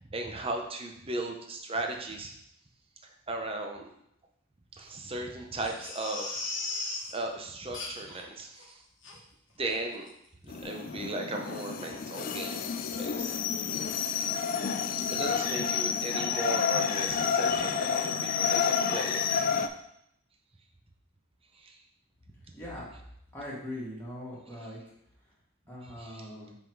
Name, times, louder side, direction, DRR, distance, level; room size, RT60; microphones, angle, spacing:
voice 1, 0.1-2.3 3.3-3.9 4.8-6.4 6.7-8.8 9.6-10.1 10.4-13.4 15.1-19.2 21.6-21.8 26.0-26.3, right 2 dB, 30° right, 3 dB, 0.7 m, -37 dB
Crying sobbing, 5.6-7.1 7.7-8.2 8.6-8.7 9.0-9.2 9.6-9.8 10.0-10.1, left 3 dB, 60° left, 1.1 m, -37 dB
sound 1, 10.5-19.7, left 7 dB, 45° left, 0.3 m, -30 dB
voice 2, 22.5-22.9 23.3-24.8 25.7-26.5, left 1 dB, 10° left, -7 dB, 1.9 m, -41 dB
5.7 x 3.8 x 4.6 m, 0.75 s
head